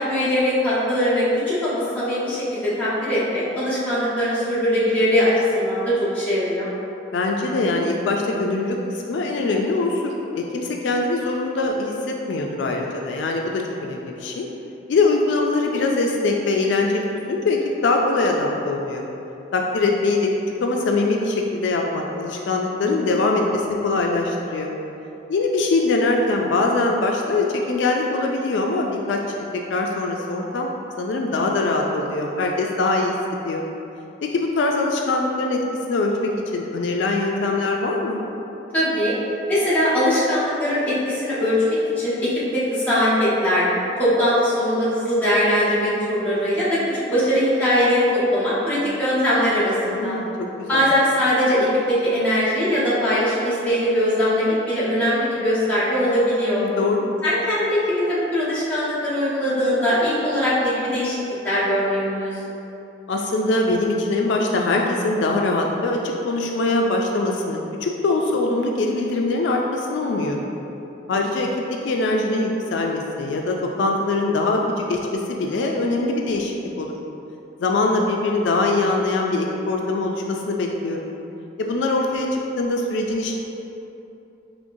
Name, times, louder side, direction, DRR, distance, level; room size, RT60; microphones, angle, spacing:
voice 1, 0.1-6.7 38.7-39.1 39.5-43.7 44.0-50.2 50.7-56.6 57.2-61.2 61.4-62.3, equal, 10° left, -13 dB, 1.3 m, -21 dB
voice 2, 7.1-14.5 14.9-19.1 19.5-20.3 20.6-24.7 25.3-29.4 29.7-30.7 31.0-33.1 33.4-33.6 34.2-35.6 35.9-38.2 49.9-50.3 50.6-50.8 56.5-57.1 63.1-70.5 71.1-71.5 71.9-76.9 77.6-81.1 81.6-83.3, left 2 dB, 80° left, 1 dB, 0.3 m, -22 dB
5.1 x 3.0 x 2.6 m, 2.8 s
head